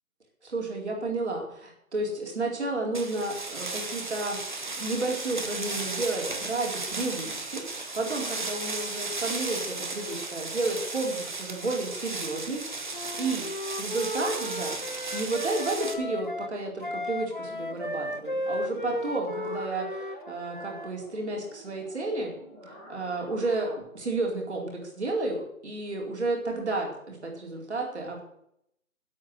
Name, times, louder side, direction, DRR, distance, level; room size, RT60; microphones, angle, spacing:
voice 1, 0.4-4.4 4.8-12.9 13.2-13.5 13.8-14.8 15.1-22.3 22.7-23.7 23.9-28.2, right 2 dB, 50° right, 0 dB, 4.4 m, -32 dB
sound 1, 2.9-15.9, right 3 dB, 35° right, 1.2 m, -35 dB
Wind instrument woodwind instrument, 12.9-20.9, left 1 dB, 35° left, 0.5 m, -35 dB
sound 2, 17.4-23.8, equal, 5° right, 1.2 m, -48 dB
9.1 x 8.9 x 8.2 m, 0.74 s
figure-of-eight pair, 175°, 43 cm